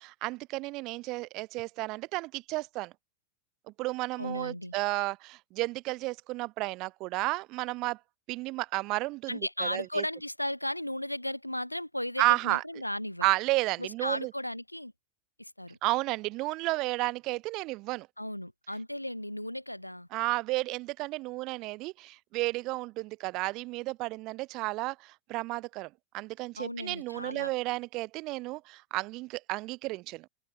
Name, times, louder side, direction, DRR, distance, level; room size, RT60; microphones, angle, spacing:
voice 1, 0.0-2.9 3.8-8.0 8.3-10.0 12.2-12.6 13.2-14.3 15.8-18.1 20.1-30.3, right 21 dB, 40° right, 0.5 m, -32 dB
voice 2, 4.2-4.7 9.3-13.3 13.8-14.9 15.4-15.8 18.2-20.1 26.6-27.5, left 1 dB, 90° left, 0.7 m, -35 dB
open air
figure-of-eight pair, 90°, 0 cm